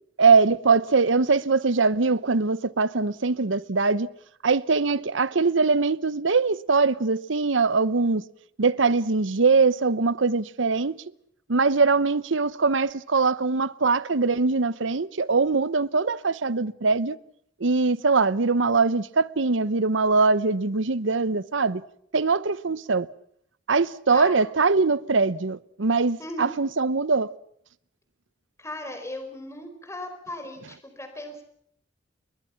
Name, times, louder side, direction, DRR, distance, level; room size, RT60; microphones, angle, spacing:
voice 1, 0.2-4.1 4.4-8.2 8.6-11.0 11.5-17.2 17.6-21.8 22.1-23.1 23.7-27.3, right 4 dB, 80° right, 0.9 m, -22 dB
voice 2, 26.2-26.5 28.6-31.4, left 1 dB, 15° left, 4.8 m, -37 dB
29.5 x 22.0 x 5.9 m
head